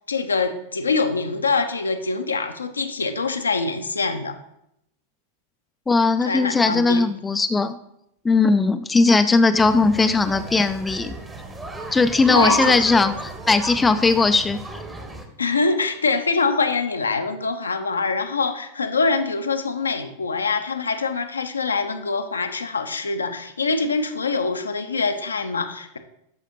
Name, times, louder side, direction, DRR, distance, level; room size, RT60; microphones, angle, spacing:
voice 1, 0.1-4.4 6.2-7.0 12.3-12.8 15.4-26.0, left 4 dB, 75° left, 7 dB, 0.6 m, -24 dB
voice 2, 5.9-7.8 8.2-11.2 11.9-14.6, left 3 dB, 10° left, 10 dB, 0.3 m, -18 dB
sound 1, 9.6-15.2, right 1 dB, 10° right, 0.9 m, -31 dB
12.0 x 4.8 x 3.0 m, 0.79 s
figure-of-eight pair, 90°, 0 cm